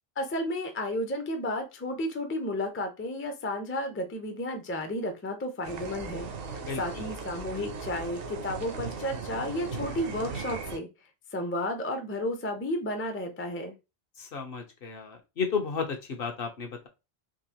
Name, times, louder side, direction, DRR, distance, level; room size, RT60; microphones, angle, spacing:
voice 1, 0.2-10.9 11.3-13.7, left 1 dB, 20° left, 5 dB, 0.4 m, -32 dB
sound 1, 5.6-10.8, right 4 dB, 65° right, 0.9 m, -38 dB
voice 2, 14.3-15.9 16.2-16.9, left 5 dB, 65° left, 4 dB, 1.0 m, -32 dB
3.8 x 2.8 x 2.8 m, 0.27 s
omnidirectional pair, 1.1 m